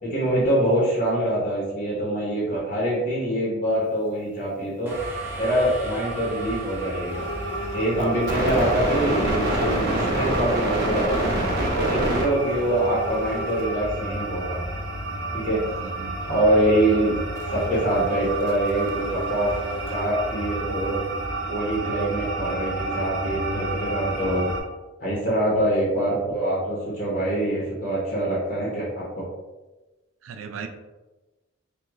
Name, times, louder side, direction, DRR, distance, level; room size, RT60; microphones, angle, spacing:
voice 1, 0.0-4.9 5.4-7.2 7.7-11.4 11.7-14.6 15.3-15.6 16.3-17.1 17.5-19.6 19.9-21.0 21.5-24.5 25.0-29.2, right 1 dB, 40° left, -6 dB, 0.9 m, -24 dB
sound 1, 4.8-8.7, right 1 dB, 10° right, 0.7 m, -44 dB
sound 2, 4.9-24.6, right 1 dB, 50° right, 0.8 m, -28 dB
sound 3, 7.1-9.4 9.8-9.9 12.3-13.7 17.3-20.4 20.8-20.9, left 1 dB, 55° left, 0.3 m, -37 dB
voice 2, 15.7-16.2 30.2-30.7, right 5 dB, 80° right, 6 dB, 0.4 m, -37 dB
3.5 x 2.3 x 3.0 m, 1.1 s
head